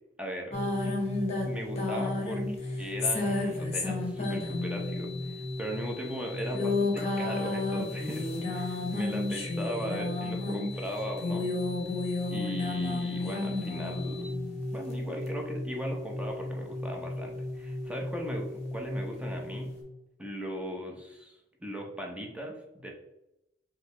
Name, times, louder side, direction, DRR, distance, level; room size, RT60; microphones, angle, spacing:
voice 1, 0.2-0.5 1.4-11.5 12.3-14.3 14.7-19.7 20.2-22.9, equal, 5° right, 0 dB, 0.7 m, -38 dB
sound 1, 0.5-19.8, left 2 dB, 35° left, 1.1 m, -32 dB
sound 2, 4.2-14.2, left 8 dB, 65° left, 0.7 m, -48 dB
4.8 x 2.8 x 3.2 m, 0.89 s
head